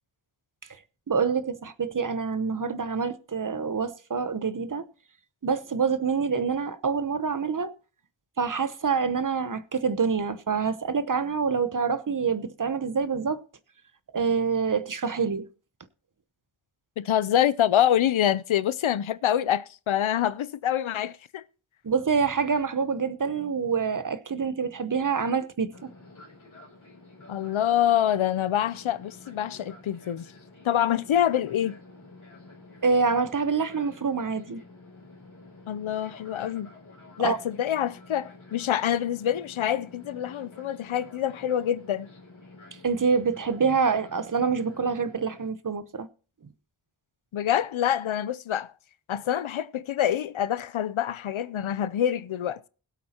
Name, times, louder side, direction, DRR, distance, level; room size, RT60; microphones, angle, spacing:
voice 1, 1.1-4.9 5.4-7.7 8.4-13.4 14.1-15.5 21.8-25.7 32.8-34.6 37.2-37.4 42.8-46.1, right 5 dB, 40° right, 0.9 m, -26 dB
voice 2, 17.0-21.4 27.3-30.3 30.6-31.8 35.7-36.7 37.2-42.1 47.3-48.7 49.1-52.6, left 10 dB, 85° left, 0.7 m, -26 dB
Fixed-wing aircraft airplane, 25.7-45.5, left 2 dB, 40° left, 3.4 m, -50 dB
21.0 x 8.2 x 2.9 m
wide cardioid pair, 95°, 46 cm